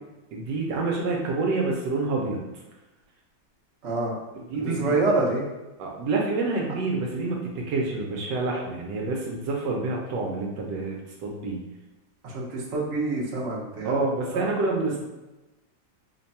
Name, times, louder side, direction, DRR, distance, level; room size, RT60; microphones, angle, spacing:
voice 1, 0.3-2.4 4.5-4.9 5.8-11.6 13.8-15.0, right 3 dB, 75° right, -1 dB, 1.2 m, -27 dB
voice 2, 3.8-4.1 4.5-5.5 12.2-14.0 14.3-14.5, right 3 dB, 55° right, -4 dB, 0.8 m, -26 dB
3.2 x 2.2 x 4.0 m, 1.0 s
omnidirectional pair, 2.1 m